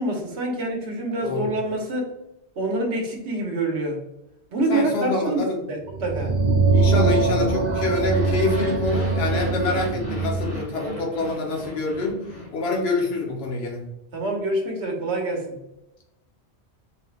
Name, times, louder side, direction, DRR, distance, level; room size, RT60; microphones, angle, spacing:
voice 1, 0.0-2.1 2.6-4.0 4.5-5.4 5.7-6.3 14.1-15.6, right 2 dB, 80° right, 1 dB, 1.3 m, -26 dB
voice 2, 4.7-5.6 6.7-12.2 12.5-13.8, left 3 dB, 65° left, -1 dB, 1.2 m, -26 dB
sound 1, 5.9-10.5, right 3 dB, 45° right, 0.7 m, -22 dB
sound 2, 8.0-13.1, equal, 20° left, 1.3 m, -37 dB
4.6 x 3.2 x 2.4 m, 0.87 s
omnidirectional pair, 1.1 m